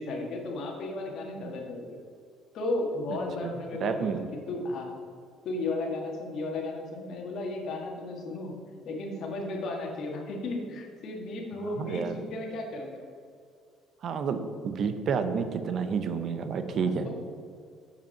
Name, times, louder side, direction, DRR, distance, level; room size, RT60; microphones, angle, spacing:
voice 1, 0.0-2.0 2.5-4.9 5.4-8.6 8.9-13.0 16.7-17.1, left 2 dB, 55° left, 1 dB, 1.6 m, -34 dB
voice 2, 3.8-4.3 11.6-12.2 14.0-17.1, right 6 dB, 45° right, 9 dB, 0.7 m, -30 dB
7.0 x 5.7 x 5.7 m, 2.2 s
cardioid pair, 150°, 0 cm